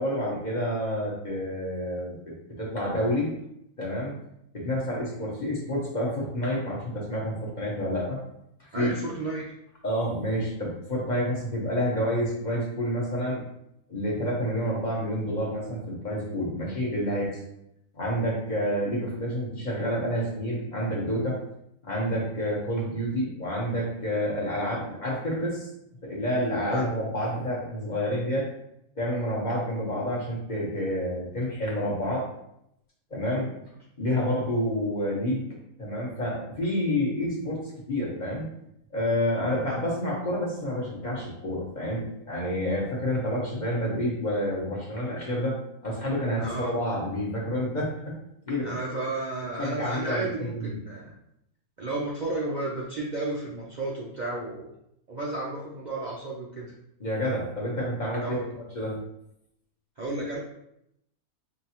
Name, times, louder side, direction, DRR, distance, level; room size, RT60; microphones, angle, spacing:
voice 1, 0.0-2.2 2.6-3.3 3.8-4.2 4.5-8.2 8.6-8.9 9.8-13.4 13.9-17.4 17.9-21.4 21.8-25.7 26.0-28.5 29.0-32.3 33.1-33.5 34.0-35.4 35.8-38.4 38.9-45.5 45.8-48.1 48.5-48.7 49.6-50.7 57.0-58.4 58.7-59.0, equal, 35° left, -4 dB, 1.1 m, -29 dB
voice 2, 8.7-9.4 26.7-26.9 39.7-39.8 46.4-46.7 48.6-51.1 51.8-54.7 55.1-56.7 58.2-58.5 60.0-60.4, right 2 dB, 85° right, -4 dB, 0.4 m, -32 dB
5.0 x 2.6 x 2.9 m, 0.78 s
omnidirectional pair, 1.6 m